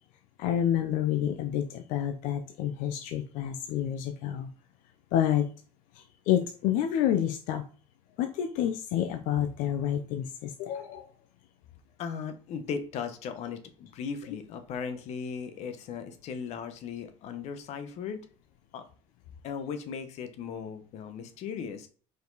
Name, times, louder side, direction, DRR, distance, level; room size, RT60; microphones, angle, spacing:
voice 1, 0.4-4.5 5.1-5.5 6.3-7.6 8.2-11.1, left 10 dB, 75° left, 7 dB, 0.7 m, -28 dB
voice 2, 12.0-18.2 18.7-18.8 19.4-21.9, left 6 dB, 55° left, 8 dB, 1.0 m, -37 dB
5.1 x 4.7 x 4.0 m, 0.39 s
cardioid pair, 155°, 14 cm